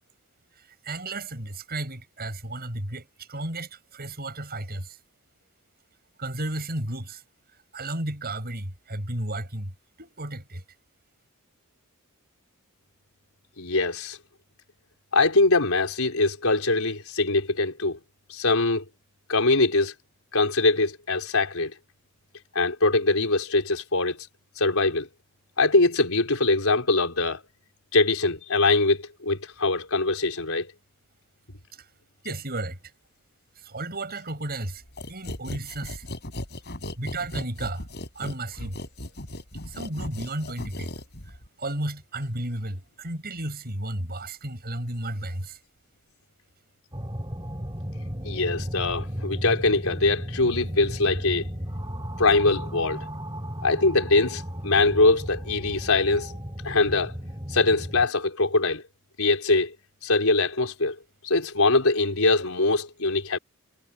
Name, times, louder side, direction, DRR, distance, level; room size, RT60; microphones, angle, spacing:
voice 1, 0.6-5.0 6.2-7.2 7.7-9.7 10.0-10.6 32.2-32.8 33.6-36.0 37.0-37.8 38.1-38.8 39.7-40.9 41.3-45.6, right 1 dB, 45° right, 7.8 m, -33 dB
voice 2, 13.6-14.2 15.1-18.0 18.3-18.8 19.3-19.9 20.3-21.7 22.5-24.2 24.6-25.1 25.6-27.4 27.9-30.7 48.2-51.5 52.2-53.1 53.6-56.3 56.6-57.2 57.5-58.8 59.2-59.7 60.0-61.0 61.2-63.4, left 3 dB, 80° left, 4.5 m, -22 dB
sound 1, 35.0-41.5, left 1 dB, 50° left, 5.2 m, -36 dB
sound 2, 46.9-58.1, equal, 20° right, 5.7 m, -34 dB
head